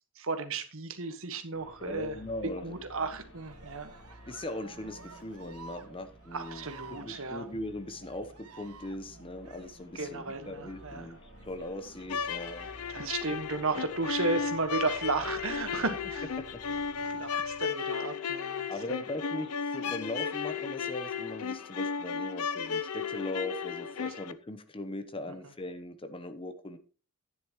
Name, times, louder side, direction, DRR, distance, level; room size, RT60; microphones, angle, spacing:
voice 1, 0.1-2.2 2.4-3.9 6.3-7.4 9.9-11.1 12.9-16.3 17.0-18.7 24.0-24.1, right 3 dB, 65° right, 8 dB, 1.5 m, -34 dB
sound 1, 1.5-17.6, equal, 55° left, 4.2 m, -54 dB
voice 2, 1.8-2.7 4.3-6.7 7.0-12.7 16.4-17.3 18.7-26.8, left 1 dB, 25° left, 10 dB, 0.9 m, -40 dB
Cheering, 3.2-14.9 16.2-17.0 17.8-18.4, right 4 dB, 85° right, 1.2 m, -54 dB
sound 2, 12.0-24.3, left 6 dB, 75° left, 0.6 m, -34 dB
11.5 x 9.8 x 3.1 m, 0.37 s
head